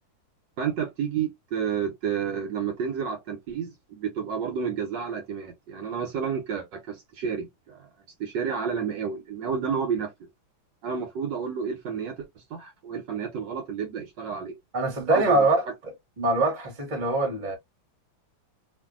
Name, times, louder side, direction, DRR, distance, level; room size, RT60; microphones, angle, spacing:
voice 1, 0.6-7.9 8.2-10.1 10.8-14.5 15.1-15.5, right 7 dB, 70° right, 1.3 m, -30 dB
voice 2, 14.7-15.6 16.2-17.6, right 2 dB, 30° right, 1.2 m, -23 dB
3.0 x 2.6 x 2.4 m
omnidirectional pair, 2.2 m